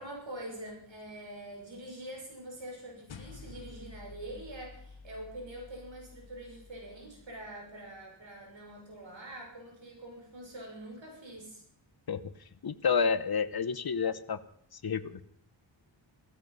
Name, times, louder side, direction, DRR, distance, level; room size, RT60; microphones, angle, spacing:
voice 1, 0.0-11.6, right 1 dB, 75° right, 1 dB, 6.0 m, -45 dB
sound 1, 3.1-7.7, left 4 dB, 85° left, 1.4 m, -51 dB
voice 2, 12.6-14.4 14.8-15.2, left 6 dB, 55° left, 13 dB, 1.1 m, -29 dB
17.0 x 14.5 x 5.6 m, 0.67 s
wide cardioid pair, 115°, 46 cm